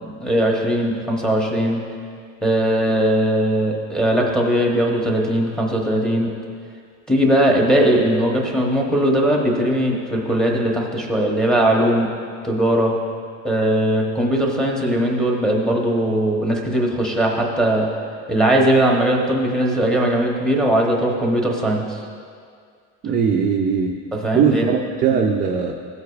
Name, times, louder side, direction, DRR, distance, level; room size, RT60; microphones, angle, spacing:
voice 1, 0.0-1.8 2.4-6.3 7.1-12.1 12.4-13.0 13.4-17.9 18.3-22.0 24.1-24.7, right 1 dB, ahead, -1 dB, 0.8 m, -19 dB
voice 2, 23.0-24.0 24.3-25.7, right 6 dB, 25° right, 0 dB, 0.3 m, -19 dB
15.5 x 8.0 x 2.4 m, 2.2 s
cardioid pair, 170°, 33 cm